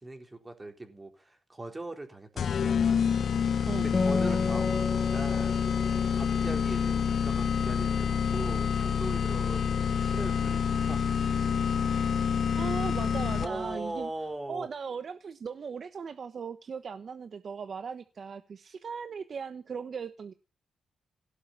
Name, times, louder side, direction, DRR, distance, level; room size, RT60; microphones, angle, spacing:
voice 1, 0.0-2.8 3.8-11.0 12.4-12.6 13.4-14.7, right 2 dB, 20° right, 4.0 m, -40 dB
sound 1, 2.4-13.7, left 7 dB, 55° left, 0.8 m, -28 dB
Acoustic guitar, 3.9-7.7, left 3 dB, 30° left, 1.9 m, -33 dB
voice 2, 12.6-14.1 14.5-20.3, right 6 dB, 50° right, 1.1 m, -38 dB
17.5 x 7.8 x 10.0 m
cardioid pair, 115°, 0 cm